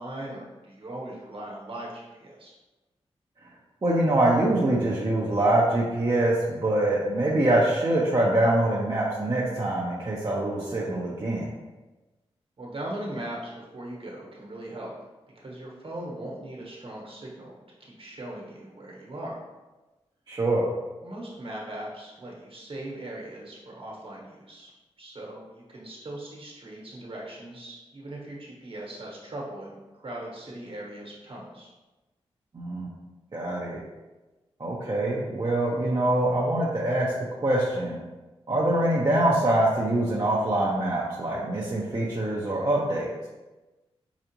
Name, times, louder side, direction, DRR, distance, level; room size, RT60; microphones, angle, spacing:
voice 1, 0.0-2.5 12.6-14.9 15.3-17.5 17.8-19.4 21.0-24.7 25.0-31.7, right 1 dB, 55° right, -3 dB, 1.3 m, -39 dB
voice 2, 3.8-11.5 20.3-20.7 32.5-32.9 33.3-33.8 34.6-37.1 37.4-38.0 38.5-43.1, right 1 dB, 40° right, -5 dB, 0.7 m, -24 dB
4.9 x 2.4 x 2.9 m, 1.1 s
cardioid pair, 45°, 11 cm